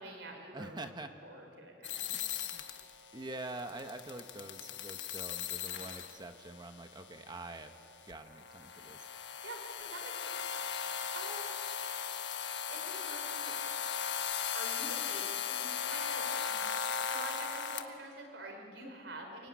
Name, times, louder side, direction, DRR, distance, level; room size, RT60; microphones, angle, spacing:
voice 1, 0.0-0.9 1.2-2.3 9.4-10.3 10.7-11.5 12.7-13.5 14.5-16.6 17.1-19.5, right 2 dB, 80° right, 3 dB, 4.4 m, -47 dB
voice 2, 0.5-1.1 2.1-2.7 3.1-7.7 8.0-9.1, right 2 dB, 25° right, 7 dB, 1.0 m, -45 dB
sound 1, 1.8-17.8, left 7 dB, 70° left, 1.4 m, -38 dB
24.5 x 22.5 x 9.6 m, 2.8 s
head